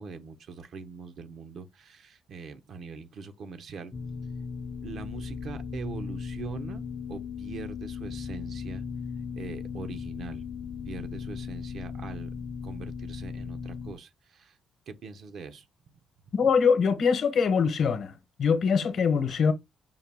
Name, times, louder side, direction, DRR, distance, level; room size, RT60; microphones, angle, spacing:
voice 1, 0.0-3.9 4.8-8.8 9.3-10.4 10.9-12.3 12.6-14.6 14.9-15.6, right 5 dB, 65° right, 0.7 m, -42 dB
sound 1, 3.9-14.0, left 6 dB, 40° left, 0.5 m, -37 dB
voice 2, 16.3-18.1 18.4-19.5, left 6 dB, 60° left, 0.9 m, -23 dB
5.5 x 2.2 x 3.4 m
cardioid pair, 90°, 0 cm